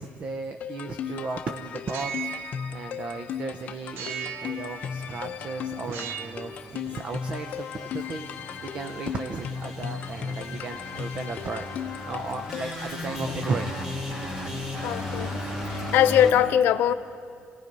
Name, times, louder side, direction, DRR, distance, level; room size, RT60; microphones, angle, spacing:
voice 1, 0.0-2.3 2.7-11.7 12.1-13.7, right 4 dB, 35° right, 7 dB, 0.8 m, -35 dB
sound 1, 0.6-12.9, left 8 dB, 45° left, 0.8 m, -36 dB
sound 2, 1.8-3.4 4.0-5.3 5.8-6.6, right 8 dB, 80° right, 0.8 m, -38 dB
sound 3, 3.9-16.3, left 1 dB, 20° right, 2.5 m, -37 dB
voice 2, 14.8-15.4 15.7-16.9, left 10 dB, 70° left, 11 dB, 0.7 m, -21 dB
28.0 x 19.0 x 5.4 m, 2.1 s
cardioid pair, 180°, 4 cm